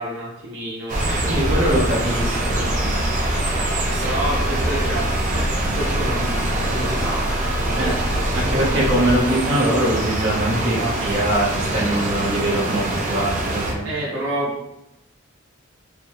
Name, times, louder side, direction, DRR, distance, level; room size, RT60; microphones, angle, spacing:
voice 1, 0.0-2.9 4.0-5.5 5.7-8.9 10.6-10.9 13.8-14.7, right 1 dB, 85° right, -7 dB, 0.9 m, -30 dB
sound 1, 0.9-13.7, right 1 dB, 40° right, 0.7 m, -24 dB
voice 2, 1.2-2.7 7.8-7.9 8.3-13.9, right 1 dB, 70° right, -6 dB, 1.3 m, -22 dB
Motor vehicle (road) / Engine, 2.1-9.0, equal, ahead, 0.4 m, -28 dB
4.9 x 2.3 x 3.3 m, 0.88 s
head